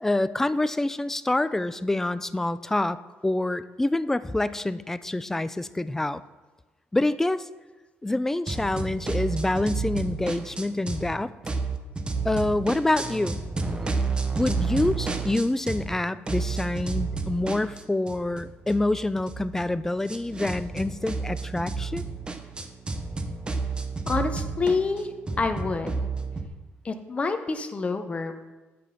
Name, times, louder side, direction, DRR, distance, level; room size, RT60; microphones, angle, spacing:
voice 1, 0.0-6.2 6.9-7.5 8.0-11.3 12.2-13.4 14.4-22.1, left 2 dB, 10° left, 15 dB, 0.3 m, -26 dB
sound 1, 8.5-11.1 11.4-16.0 16.3-26.5, right 4 dB, 20° right, 0.8 m, -31 dB
voice 2, 24.1-25.1 25.4-25.9 26.8-28.5, left 4 dB, 25° left, 8 dB, 0.8 m, -27 dB
9.1 x 5.0 x 5.6 m, 1.2 s
cardioid pair, 110°, 4 cm